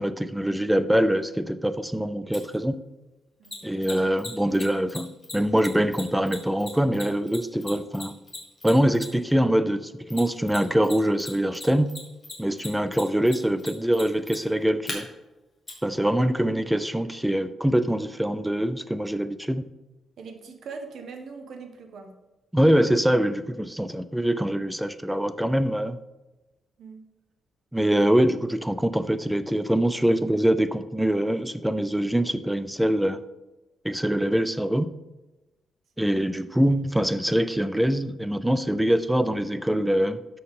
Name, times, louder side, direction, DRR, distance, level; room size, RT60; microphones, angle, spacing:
voice 1, 0.0-2.8 3.6-8.1 8.6-11.9 12.4-15.1 15.8-19.6 22.5-26.0 27.7-33.2 33.8-34.9 36.0-40.2, equal, 5° right, 12 dB, 0.3 m, -24 dB
Mechanisms, 2.3-2.4 3.4-9.3 10.1-10.9 11.2-14.9 15.7-15.8, left 2 dB, 20° left, 1.9 m, -37 dB
voice 2, 20.2-22.1 26.8-27.0 27.9-28.0 36.0-36.3, right 4 dB, 65° right, 4 dB, 1.2 m, -42 dB
12.5 x 4.5 x 3.7 m, 1.1 s
wide cardioid pair, 145°, 0 cm